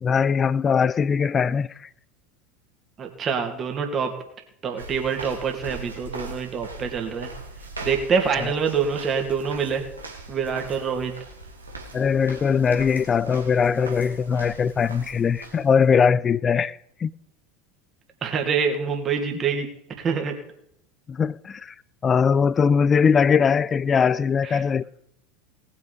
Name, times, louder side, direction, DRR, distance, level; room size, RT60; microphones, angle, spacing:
voice 1, 0.0-1.7 8.4-8.5 11.9-17.1 21.1-21.7 22.0-24.8, left 6 dB, 30° left, 0.5 m, -21 dB
voice 2, 3.0-4.1 4.6-7.3 7.8-9.8 10.3-11.1 18.2-19.7 20.0-20.3 24.4-24.6, right 6 dB, 35° right, 2.5 m, -25 dB
sound 1, 4.8-15.9, right 2 dB, 85° right, 2.0 m, -40 dB
19.0 x 7.1 x 5.1 m
figure-of-eight pair, 75°, 0 cm